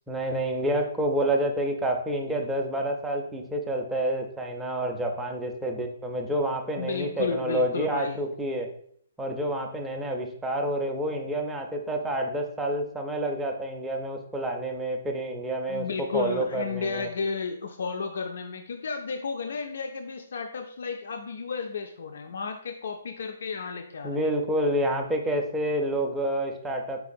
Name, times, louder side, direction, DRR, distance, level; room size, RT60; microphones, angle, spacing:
voice 1, 0.1-8.7 9.2-17.1 24.0-27.0, right 1 dB, 5° right, 1 dB, 0.4 m, -28 dB
voice 2, 6.8-8.2 15.7-24.2, left 5 dB, 65° left, 5 dB, 0.3 m, -33 dB
4.7 x 3.5 x 2.5 m, 0.64 s
hypercardioid pair, 170°, 0 cm